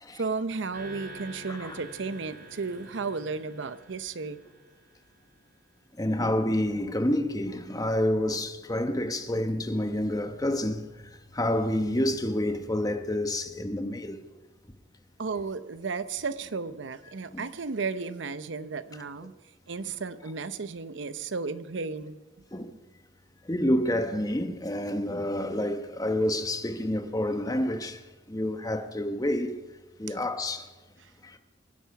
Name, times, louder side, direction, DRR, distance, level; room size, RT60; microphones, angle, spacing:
voice 1, 0.2-4.4 15.2-19.3 19.7-22.2 31.0-31.1, right 4 dB, 70° right, 0.7 m, -34 dB
sound 1, 0.7-5.2, right 1 dB, 55° right, 6.6 m, -47 dB
voice 2, 1.5-1.8 6.0-10.8 11.3-14.2 17.3-17.4 22.5-22.7 23.5-28.0 28.3-29.6 30.0-30.7, left 1 dB, 20° left, 1.0 m, -28 dB
23.5 x 10.5 x 5.9 m
head